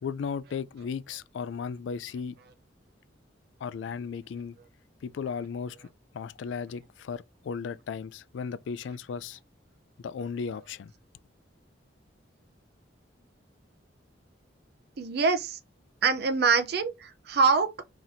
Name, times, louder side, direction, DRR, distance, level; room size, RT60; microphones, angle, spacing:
voice 1, 0.0-2.3 3.6-4.6 5.0-5.9 6.1-9.4 10.0-10.9, left 6 dB, 80° left, 0.3 m, -35 dB
voice 2, 15.0-15.6 16.0-17.8, right 5 dB, 60° right, 0.6 m, -24 dB
3.0 x 2.6 x 4.0 m
head